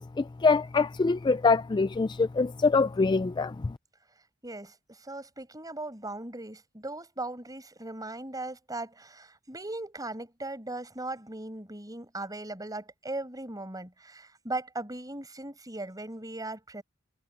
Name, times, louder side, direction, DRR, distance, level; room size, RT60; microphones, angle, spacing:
voice 1, 0.0-3.7, left 4 dB, 20° left, 0.3 m, -25 dB
voice 2, 4.4-16.8, right 2 dB, 20° right, 6.6 m, -38 dB
head